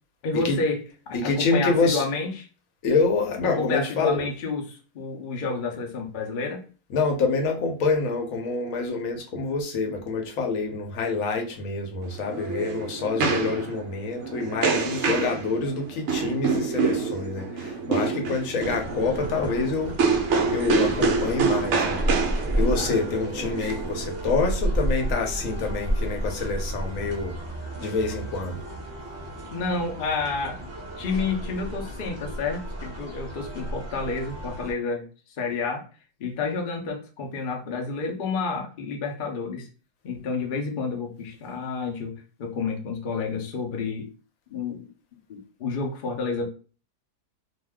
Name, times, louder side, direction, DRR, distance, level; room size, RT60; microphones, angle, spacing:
voice 1, 0.2-2.5 3.4-6.6 29.5-30.6 31.0-35.1 35.4-35.8 36.2-39.7 40.0-44.1 44.5-44.9 45.3-46.5, left 4 dB, 80° left, 0.4 m, -30 dB
voice 2, 1.1-2.1 2.8-4.3 6.9-20.0 20.5-22.0 22.6-27.3 27.8-28.6, left 4 dB, 65° left, 0.9 m, -26 dB
sound 1, 12.0-24.5, right 5 dB, 70° right, 0.7 m, -27 dB
sound 2, 18.6-34.7, right 1 dB, 15° right, 0.5 m, -32 dB
2.6 x 2.2 x 3.4 m
omnidirectional pair, 1.8 m